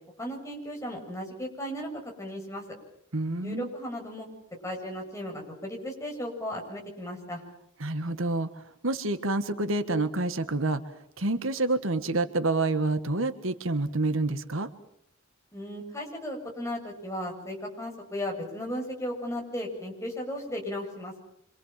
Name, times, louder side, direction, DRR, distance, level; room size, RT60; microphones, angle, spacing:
voice 1, 0.2-1.9 2.2-2.6 3.4-4.3 4.6-7.4 15.5-21.2, equal, 15° left, 0 dB, 7.6 m, -35 dB
voice 2, 3.1-3.7 7.8-10.8 11.2-14.7, right 2 dB, 65° right, 10 dB, 1.6 m, -28 dB
27.0 x 26.0 x 7.6 m, 0.72 s
head